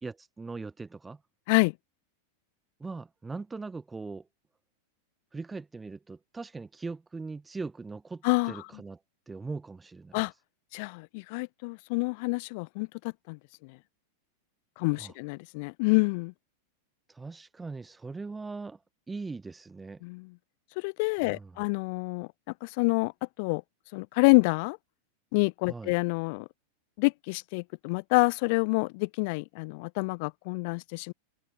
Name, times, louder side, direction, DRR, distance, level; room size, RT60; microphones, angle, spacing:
voice 1, 0.0-1.2 2.8-4.3 5.3-9.0 9.3-10.2 15.0-15.1 17.1-18.8 19.1-20.0 21.2-21.6 25.7-25.9, right 3 dB, 10° right, 3.7 m, -40 dB
voice 2, 10.7-13.8 14.8-16.3 20.0-20.3 20.8-22.3 22.6-23.1 23.4-23.6 23.9-24.8 25.3-26.5 27.0-31.1, left 29 dB, 45° left, 1.2 m, -27 dB
open air
figure-of-eight pair, 90°, 0 cm